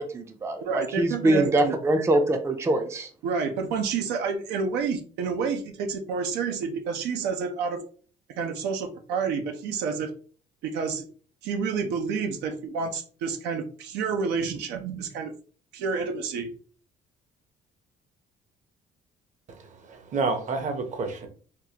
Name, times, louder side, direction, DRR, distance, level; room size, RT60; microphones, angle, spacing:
voice 1, 0.0-3.1, right 1 dB, 15° right, 6 dB, 0.4 m, -24 dB
voice 2, 0.6-1.8 3.2-7.8 8.4-10.1 10.6-11.0 11.4-15.3 15.7-16.5, right 5 dB, 90° right, 5 dB, 0.6 m, -29 dB
voice 3, 19.5-21.3, right 4 dB, 45° right, 6 dB, 0.8 m, -30 dB
3.6 x 2.3 x 2.8 m, 0.43 s
cardioid pair, 110°, 17 cm